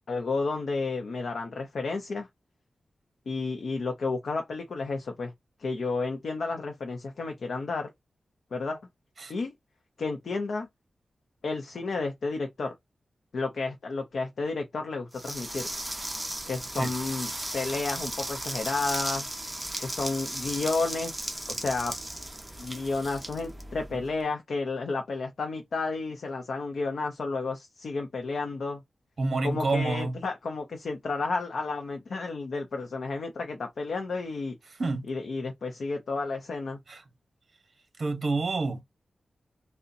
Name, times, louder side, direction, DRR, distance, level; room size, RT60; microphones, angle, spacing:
voice 1, 0.1-2.3 3.3-5.3 5.6-7.9 8.5-8.8 9.3-9.5 10.0-10.7 11.4-12.7 13.3-15.7 16.5-19.3 19.8-22.0 22.6-28.8 29.4-34.6 35.1-36.8, left 3 dB, 70° left, 0.6 m, -31 dB
sound 1, 15.1-24.1, right 1 dB, 10° right, 0.9 m, -36 dB
voice 2, 29.2-30.2 34.8-35.0 36.9-37.0 38.0-38.8, right 3 dB, 45° right, 0.8 m, -28 dB
3.8 x 2.1 x 2.6 m
wide cardioid pair, 125°, 0 cm